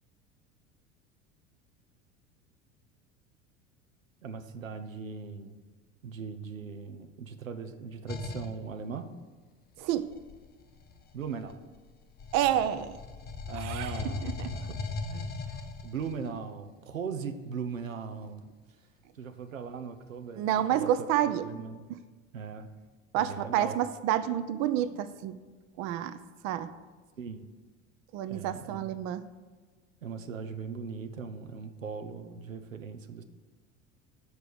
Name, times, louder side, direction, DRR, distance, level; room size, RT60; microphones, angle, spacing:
voice 1, 4.2-5.6 6.0-9.1 11.1-11.6 13.5-14.8 15.1-15.3 15.8-18.5 19.1-20.4 20.7-20.9 21.4-21.9 22.3-22.7 23.1-23.8 27.2-27.5 28.3-28.9 30.0-33.2, right 6 dB, 90° right, 8 dB, 0.6 m, -39 dB
sound 1, 8.1-8.6 9.9-11.8 12.2-16.3, left 4 dB, 25° left, 0.7 m, -38 dB
voice 2, 9.8-10.1 12.3-13.0 13.5-14.5 20.4-21.4 23.1-25.4 25.8-26.2 26.4-26.7 28.1-29.2, right 11 dB, 45° right, 12 dB, 0.5 m, -29 dB
6.7 x 4.7 x 6.8 m, 1.4 s
figure-of-eight pair, 75°, 39 cm